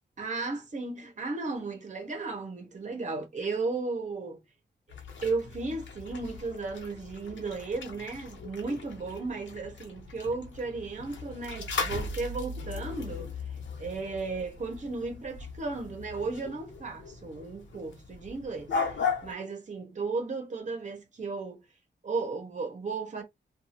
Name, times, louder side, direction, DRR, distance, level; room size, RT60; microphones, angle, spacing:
voice 1, 0.2-4.4 5.2-13.3 13.8-21.6 22.0-23.2, right 3 dB, 40° right, 0.9 m, -35 dB
sound 1, 4.9-19.3, left 4 dB, 90° left, 0.9 m, -38 dB
2.6 x 2.3 x 2.8 m
wide cardioid pair, 155°, 19 cm